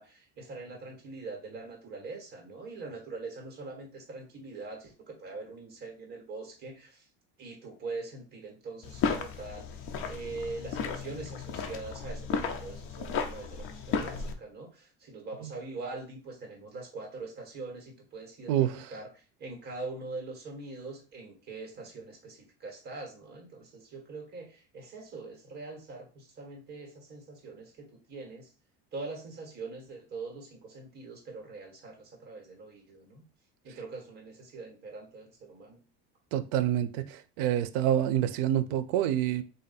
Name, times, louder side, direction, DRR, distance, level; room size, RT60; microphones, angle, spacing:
voice 1, 0.0-7.1 7.4-18.5 18.9-28.5 28.9-33.2 33.6-35.8, right 3 dB, 30° right, 1.5 m, -43 dB
sound 1, 8.8-14.3, left 6 dB, 45° left, 0.6 m, -34 dB
voice 2, 18.5-18.9 36.3-39.4, right 11 dB, 85° right, 0.6 m, -27 dB
3.8 x 2.6 x 4.1 m
cardioid pair, 165°, 32 cm